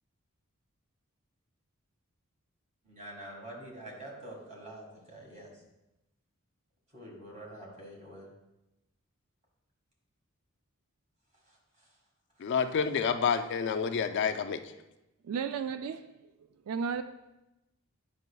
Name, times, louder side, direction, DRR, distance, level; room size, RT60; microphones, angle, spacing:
voice 1, 2.8-5.5 6.9-8.3 11.5-11.6, right 1 dB, 35° right, 1.8 m, -46 dB
voice 2, 12.4-14.6, left 6 dB, 55° left, 0.4 m, -28 dB
voice 3, 15.2-16.1 16.7-17.0, right 6 dB, 85° right, 0.3 m, -33 dB
9.3 x 5.4 x 2.3 m
head